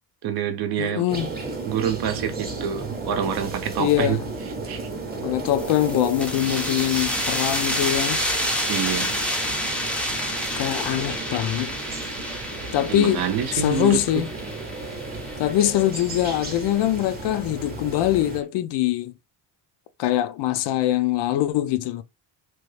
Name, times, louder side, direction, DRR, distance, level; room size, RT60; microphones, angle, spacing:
voice 1, 0.2-1.1 1.7-4.2 4.7-4.9 8.7-9.1 12.9-14.2, right 8 dB, 60° right, 0.6 m, -27 dB
voice 2, 0.8-1.3 3.8-4.3 5.2-8.2 10.6-11.7 12.7-13.2 13.5-14.3 15.4-19.1 20.0-22.0, left 12 dB, 70° left, 0.5 m, -23 dB
sound 1, 1.1-18.4, right 3 dB, 20° right, 0.8 m, -34 dB
sound 2, 5.5-16.8, equal, 5° left, 0.4 m, -29 dB
3.0 x 2.3 x 3.2 m
cardioid pair, 145°, 44 cm